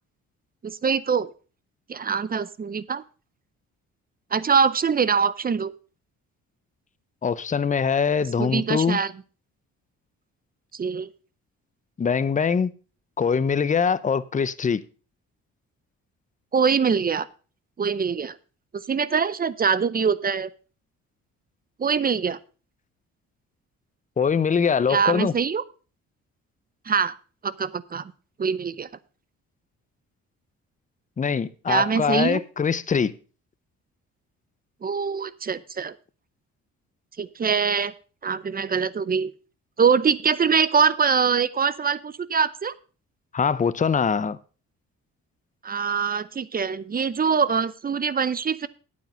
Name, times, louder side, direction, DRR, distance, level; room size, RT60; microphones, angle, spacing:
voice 1, 0.6-1.3 1.9-3.0 4.3-5.7 8.2-9.1 10.8-11.1 16.5-17.3 17.8-18.3 18.9-20.5 21.8-22.4 24.9-25.6 26.9-27.2 27.4-28.1 28.4-28.9 31.7-32.4 34.8-35.9 37.2-37.9 38.2-39.3 39.8-42.7 45.6-48.7, right 6 dB, 30° right, 0.6 m, -23 dB
voice 2, 7.2-9.0 12.0-12.7 13.2-14.8 24.2-25.3 31.2-33.1 43.3-44.4, left 6 dB, 25° left, 0.7 m, -23 dB
9.0 x 8.6 x 5.3 m
cardioid pair, 90°, 30 cm